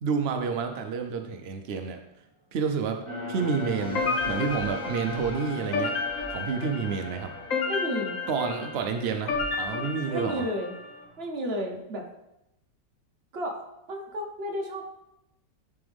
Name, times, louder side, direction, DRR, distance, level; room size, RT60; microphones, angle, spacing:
voice 1, 0.0-2.0 2.5-6.0 6.3-7.3 8.3-10.4, right 5 dB, 85° right, 5 dB, 0.5 m, -29 dB
sound 1, 2.1-11.3, right 1 dB, 15° right, 1.0 m, -51 dB
sound 2, 3.1-10.3, left 2 dB, 25° left, 1.8 m, -39 dB
sound 3, 3.9-10.9, left 4 dB, 55° left, 1.1 m, -32 dB
voice 2, 7.7-8.2 9.7-10.7 11.2-12.0 13.3-13.6 13.9-14.9, equal, 40° right, 1 dB, 1.2 m, -32 dB
10.5 x 4.5 x 3.5 m, 0.86 s
omnidirectional pair, 1.9 m